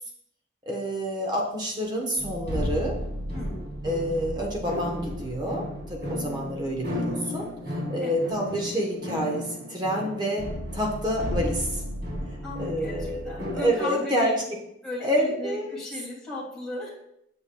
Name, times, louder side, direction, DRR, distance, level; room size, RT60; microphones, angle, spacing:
voice 1, 0.6-3.0 3.8-7.5 7.9-10.5 10.7-11.8 12.6-14.3 15.0-15.7, equal, 25° right, 0 dB, 1.0 m, -28 dB
sound 1, 2.2-13.6, left 1 dB, 60° right, 2.1 m, -33 dB
voice 2, 3.3-3.7 8.0-8.3 12.4-14.3 14.8-16.9, left 2 dB, 5° left, -8 dB, 2.5 m, -35 dB
8.5 x 6.5 x 2.3 m, 0.76 s
head